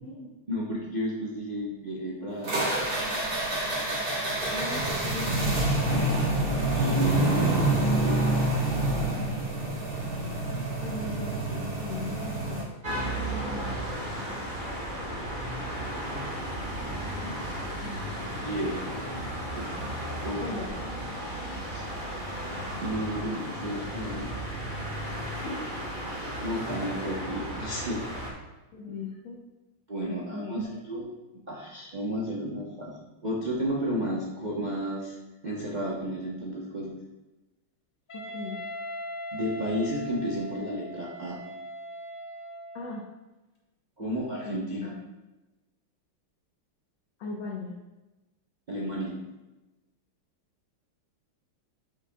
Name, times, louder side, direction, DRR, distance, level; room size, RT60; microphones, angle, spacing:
voice 1, 0.5-2.6 6.7-7.6 8.0-8.3 18.4-18.8 19.6-19.7 20.2-20.6 21.4-21.8 22.8-24.3 26.4-28.0 29.9-31.1 31.3-35.1 35.4-36.9 39.3-41.4 44.0-44.9 48.7-49.3, equal, 80° right, -5 dB, 0.4 m, -32 dB
sound 1, 2.4-12.6, right 1 dB, 65° right, 2.6 m, -27 dB
voice 2, 4.5-5.6 5.9-6.8 10.4-14.1 17.1-18.1 20.4-20.7 25.4-25.6 28.7-29.4 30.1-30.6 38.1-38.6 42.7-43.0 44.0-44.1 44.4-45.0 47.2-47.8, left 3 dB, 70° left, -3 dB, 1.6 m, -40 dB
sound 2, 12.8-28.3, right 1 dB, 25° right, 1.3 m, -34 dB
Wind instrument woodwind instrument, 38.1-43.1, equal, 35° left, 0.9 m, -40 dB
8.3 x 6.6 x 2.3 m, 1.1 s
omnidirectional pair, 2.4 m